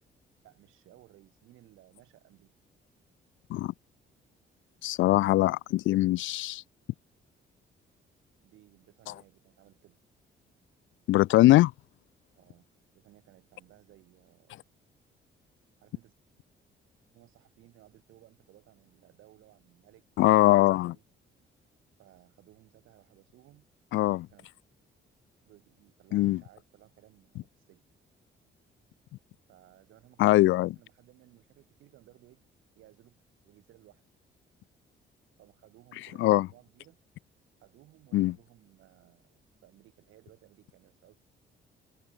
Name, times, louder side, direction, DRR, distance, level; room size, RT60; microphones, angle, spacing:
voice 1, 0.4-2.6 8.4-10.0 12.3-12.7 12.9-14.6 15.8-16.1 17.1-20.5 20.9-21.0 22.0-23.7 24.2-24.5 25.4-27.8 29.5-32.4 32.7-34.0 35.4-37.0 37.6-41.2, right 15 dB, 85° right, 3.3 m, -59 dB
voice 2, 4.8-6.6 11.1-11.7 20.2-21.0 23.9-24.3 26.1-26.4 30.2-30.7 36.2-36.5 38.1-38.3, left 16 dB, 75° left, 0.4 m, -22 dB
cardioid pair, 90°, 20 cm